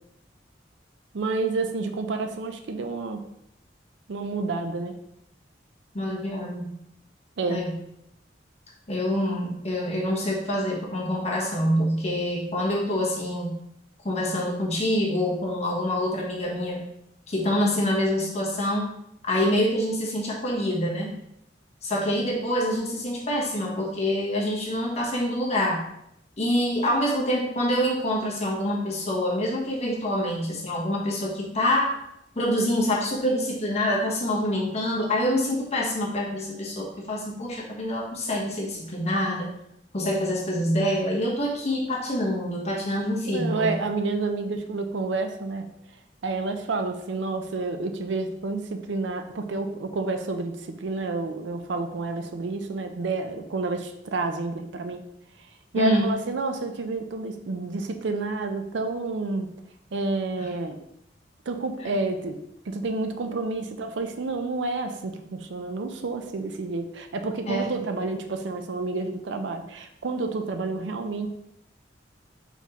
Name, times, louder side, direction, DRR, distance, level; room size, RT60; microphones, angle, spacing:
voice 1, 1.1-3.2 4.1-4.9 7.4-7.6 43.3-45.7 46.2-55.0 55.7-59.5 59.9-60.8 61.5-62.4 62.7-71.3, right 3 dB, 80° right, 7 dB, 0.5 m, -29 dB
voice 2, 5.9-6.7 7.5-7.7 8.9-13.5 14.0-16.9 17.3-18.9 19.2-21.1 21.8-25.8 26.4-32.0 32.3-39.5 39.9-43.7 55.8-56.1 60.4-60.5 61.8-61.9 67.5-67.7, left 1 dB, 35° left, -3 dB, 1.1 m, -26 dB
4.6 x 3.6 x 2.9 m, 0.78 s
head